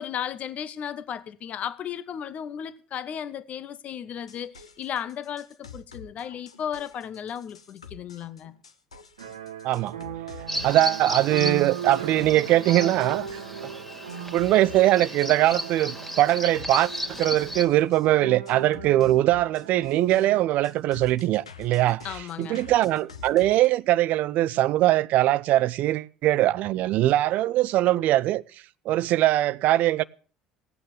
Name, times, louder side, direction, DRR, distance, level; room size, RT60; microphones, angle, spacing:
voice 1, 0.0-8.5 22.0-22.6, left 9 dB, 50° left, 1.1 m, -35 dB
sound 1, 4.2-13.6 14.1-15.8 16.3-18.1 18.5-23.7, left 5 dB, 90° left, 0.9 m, -47 dB
sound 2, 9.2-20.4, right 8 dB, 85° right, 1.1 m, -37 dB
voice 2, 9.6-10.0 10.6-13.4 14.3-28.4 28.9-30.0, right 14 dB, 60° right, 0.6 m, -22 dB
Bird vocalization bird call bird song, 10.5-17.6, equal, 10° left, 2.2 m, -35 dB
17.0 x 8.7 x 7.7 m
hypercardioid pair, 60°, 3 cm